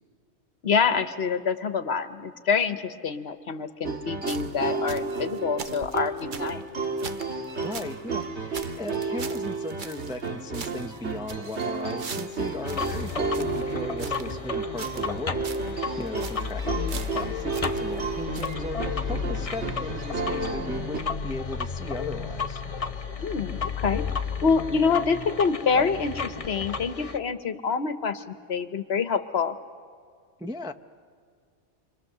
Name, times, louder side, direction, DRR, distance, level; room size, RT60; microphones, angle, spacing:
voice 1, 0.6-6.6 23.2-24.0 24.4-29.6, left 5 dB, 65° left, 11 dB, 1.2 m, -26 dB
sound 1, 3.8-21.0, right 4 dB, 70° right, 2.1 m, -32 dB
sound 2, 4.2-8.0 8.2-8.3 8.5-10.3 10.5-14.4 14.8-15.2 15.4-15.7 16.0-16.5 16.9-18.1 18.3-18.5, right 6 dB, 45° right, 0.9 m, -42 dB
voice 2, 7.6-22.7 30.4-30.7, left 2 dB, 5° right, 5 dB, 0.5 m, -37 dB
sound 3, 12.6-27.2, left 5 dB, 35° left, 0.7 m, -32 dB
28.5 x 24.5 x 6.7 m, 2.1 s
omnidirectional pair, 1.2 m